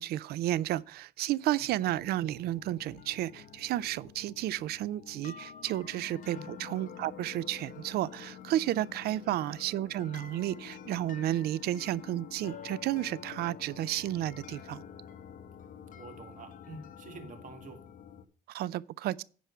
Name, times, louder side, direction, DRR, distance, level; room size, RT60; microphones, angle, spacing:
voice 1, 0.0-14.8 18.5-19.2, right 14 dB, 70° right, 0.4 m, -32 dB
voice 2, 1.6-1.9 6.3-6.4 9.2-9.3 16.0-17.8, right 3 dB, 50° right, 1.9 m, -47 dB
sound 1, 1.8-18.2, left 8 dB, 50° left, 1.1 m, -48 dB
10.0 x 4.8 x 5.5 m
cardioid pair, 110°, 17 cm